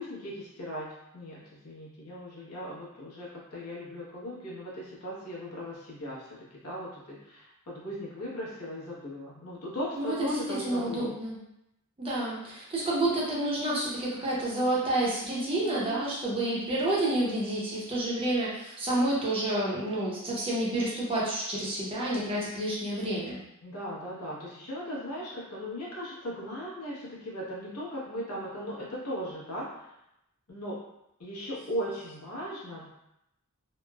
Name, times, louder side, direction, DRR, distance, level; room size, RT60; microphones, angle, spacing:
voice 1, 0.0-11.1 15.6-16.1 23.6-29.7 30.5-30.8 31.2-32.9, equal, 75° left, -5 dB, 0.9 m, -38 dB
voice 2, 9.9-11.4 12.0-23.4, right 1 dB, 25° right, -6 dB, 0.6 m, -29 dB
3.0 x 2.0 x 2.2 m, 0.83 s
head